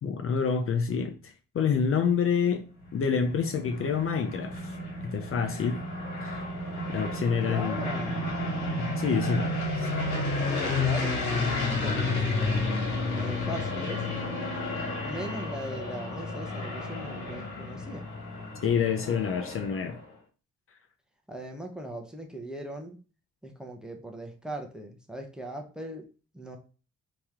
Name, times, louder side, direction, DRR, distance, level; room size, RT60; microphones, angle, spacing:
voice 1, 0.0-2.6 2.9-4.8 5.0-5.8 6.2-6.4 6.9-7.8 8.8-9.5 9.7-10.0 18.6-20.0, left 6 dB, 45° left, 0.5 m, -28 dB
sound 1, 2.9-20.0, left 2 dB, 75° left, 1.9 m, -31 dB
voice 2, 7.4-8.4 10.5-12.5 13.1-14.1 15.0-18.1 21.3-23.0 23.4-26.1 26.3-26.6, right 1 dB, ahead, 0.8 m, -39 dB
3.1 x 3.0 x 3.6 m
cardioid pair, 90°, 30 cm